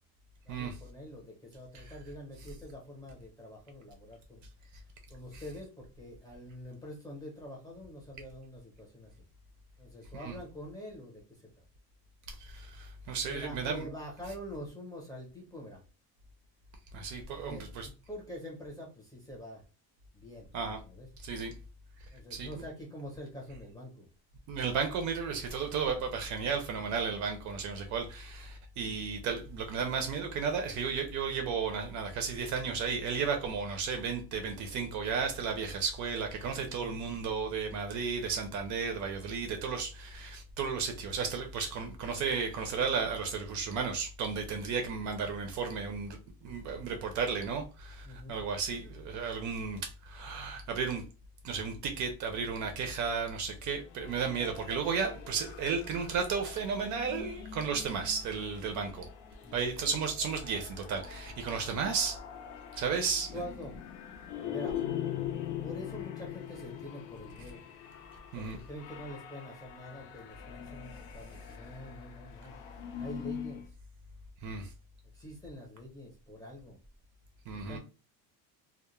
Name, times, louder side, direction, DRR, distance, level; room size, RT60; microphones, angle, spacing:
voice 1, 0.4-4.4 5.1-9.1 9.8-11.2 11.6-11.7 13.2-15.8 17.3-19.6 20.1-20.5 20.8-21.1 22.1-24.1 36.6-36.9 48.0-48.4 59.4-59.7 63.3-63.7 64.5-64.8 65.6-67.6 68.3-72.6 73.0-73.6 75.1-76.8 77.5-77.8, equal, 10° left, 0.7 m, -45 dB
voice 2, 12.3-13.9 16.9-17.9 20.5-20.8 21.2-21.5 22.0-22.5 24.5-51.0 51.4-59.1 59.5-62.2 62.7-63.3 68.3-68.6 74.4-74.7 77.5-77.8, right 5 dB, 50° right, 0.4 m, -34 dB
sound 1, 53.9-73.7, left 10 dB, 85° left, 0.5 m, -43 dB
2.2 x 2.0 x 2.9 m
cardioid pair, 175°, 39 cm